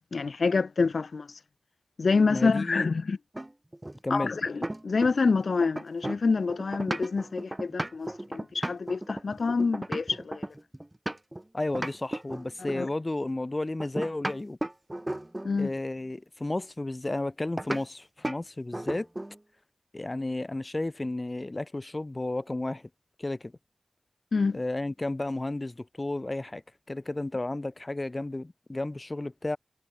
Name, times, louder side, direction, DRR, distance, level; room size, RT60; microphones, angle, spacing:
voice 1, 0.1-1.3 2.0-3.2 4.1-10.5 12.8-12.9 15.4-15.7 24.3-24.6, left 4 dB, 80° left, 3.1 m, -27 dB
voice 2, 2.3-2.9 4.0-4.3 11.5-14.6 15.6-19.1 19.9-22.9 23.2-23.5 24.5-26.6 26.9-29.6, left 2 dB, 35° left, 4.9 m, -32 dB
sound 1, 3.3-5.3 5.6-11.4 11.7-12.9 13.8-15.6 17.6-17.8 18.2-18.4 18.7-19.4, right 1 dB, 20° right, 2.7 m, -35 dB
cardioid pair, 50°, 0 cm